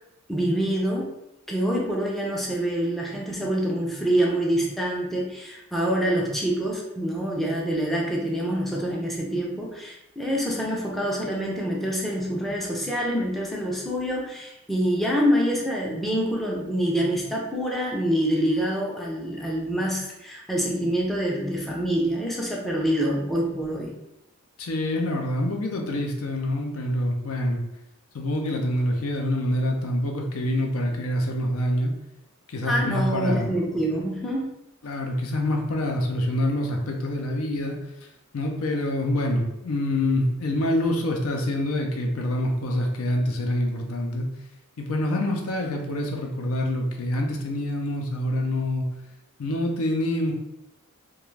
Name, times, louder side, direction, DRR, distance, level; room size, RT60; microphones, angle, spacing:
voice 1, 0.3-1.1 1.5-23.9 32.7-34.5, equal, ahead, -3 dB, 0.4 m, -26 dB
voice 2, 24.6-27.6 28.1-31.9 32.5-33.5 34.8-37.8 38.3-44.3 44.8-48.8 49.4-50.3, left 1 dB, 80° left, 2 dB, 0.5 m, -26 dB
2.3 x 2.2 x 3.2 m, 0.90 s
head